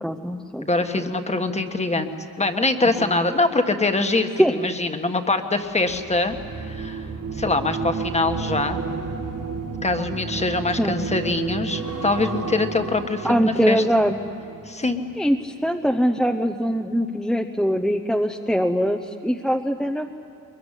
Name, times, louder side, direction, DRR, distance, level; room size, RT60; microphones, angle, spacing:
voice 1, 0.0-0.7 1.0-1.1 3.0-3.3 4.4-4.5 10.8-11.0 13.2-14.2 15.2-20.1, equal, ahead, 3 dB, 0.8 m, -22 dB
voice 2, 0.6-2.1 2.4-7.1 7.3-8.8 9.8-13.8 14.6-15.0, left 2 dB, 20° left, 7 dB, 1.4 m, -23 dB
sound 1, 5.8-15.2 15.5-15.9, right 4 dB, 65° right, 3.7 m, -32 dB
23.0 x 22.5 x 10.0 m, 2.9 s
wide cardioid pair, 145°, 34 cm